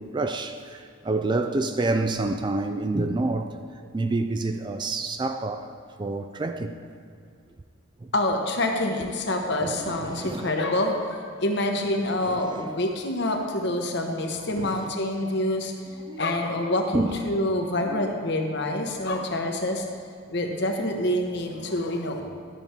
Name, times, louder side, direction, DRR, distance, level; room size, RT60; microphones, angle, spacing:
voice 1, 0.0-3.6 3.9-5.7 6.0-6.8 8.0-8.1 9.6-10.5 12.2-12.7 14.6-14.9 16.1-16.2 16.9-17.2 17.8-18.1, right 2 dB, 20° right, 0.3 m, -28 dB
voice 2, 8.1-15.7 16.2-19.9 20.3-22.2, left 1 dB, 55° left, 1.0 m, -26 dB
12.0 x 7.0 x 4.4 m
head